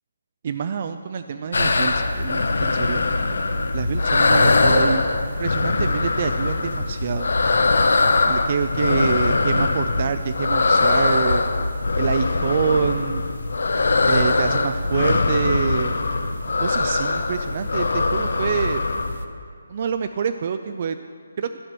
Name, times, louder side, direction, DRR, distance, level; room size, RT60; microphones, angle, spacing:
voice 1, 0.4-3.0 3.7-7.3 8.3-11.4 12.0-13.3 14.0-16.0 16.6-18.8 19.7-21.0 21.4-21.5, right 6 dB, 40° right, 9 dB, 0.3 m, -26 dB
sound 1, 1.5-19.2, left 3 dB, 75° left, 0.7 m, -21 dB
11.0 x 5.9 x 6.6 m, 2.2 s
hypercardioid pair, 165°, 0 cm